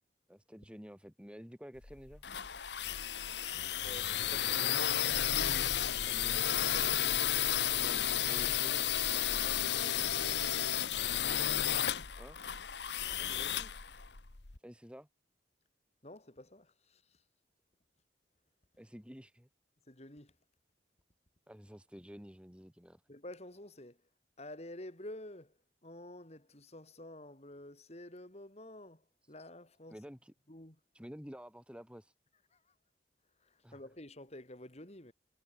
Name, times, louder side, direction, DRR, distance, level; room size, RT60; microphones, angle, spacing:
voice 1, 0.3-2.2 6.0-7.1 7.8-10.4 12.2-12.4 14.6-15.1 18.8-19.5 21.5-23.0 29.9-30.3 30.9-32.1 33.6-33.8, equal, 5° right, 6.5 m, -51 dB
sound 1, 1.8-14.6, left 10 dB, 70° left, 1.5 m, -32 dB
voice 2, 3.8-5.0 9.7-10.1 13.1-13.8 16.0-17.2 19.9-20.3 23.1-24.0 24.4-25.5 25.8-29.9 30.5-30.8 32.5-32.6 33.4-35.1, left 1 dB, 35° left, 3.5 m, -50 dB
head